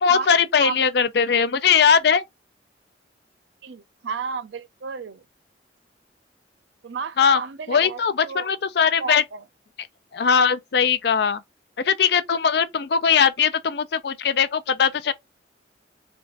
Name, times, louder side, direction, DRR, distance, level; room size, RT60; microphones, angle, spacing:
voice 1, 0.0-2.2 7.2-7.4 7.7-9.2 10.1-11.4 11.8-15.1, left 6 dB, 60° left, 0.4 m, -20 dB
voice 2, 3.6-5.2 6.8-8.6 9.0-9.4, right 5 dB, 80° right, 0.5 m, -32 dB
3.5 x 2.4 x 3.8 m
head